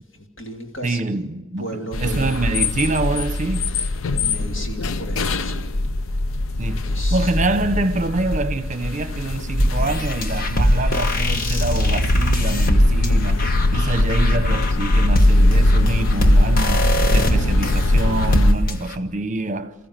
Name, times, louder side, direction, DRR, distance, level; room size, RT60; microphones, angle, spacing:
voice 1, 0.1-1.3 1.6-2.3 3.7-5.7 6.7-7.3, equal, 65° left, 3.0 m, -35 dB
voice 2, 0.8-1.7 2.0-3.7 6.6-19.7, right 2 dB, 35° right, 0.9 m, -25 dB
sound 1, 1.9-18.5, left 1 dB, 85° left, 0.7 m, -21 dB
sound 2, 9.6-18.9, equal, 45° left, 1.2 m, -22 dB
28.0 x 14.5 x 7.6 m
head